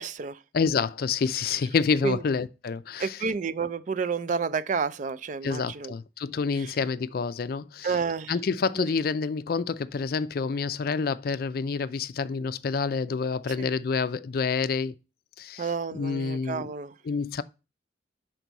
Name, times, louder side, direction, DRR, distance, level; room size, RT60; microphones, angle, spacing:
voice 1, 0.0-0.4 2.0-2.2 3.0-5.9 7.8-8.3 8.8-8.9 15.6-16.9, right 5 dB, 45° right, 0.4 m, -30 dB
voice 2, 0.5-3.2 5.4-8.0 8.3-14.9 15.4-16.7 17.0-17.4, left 5 dB, 55° left, 0.4 m, -28 dB
6.1 x 4.5 x 3.9 m
head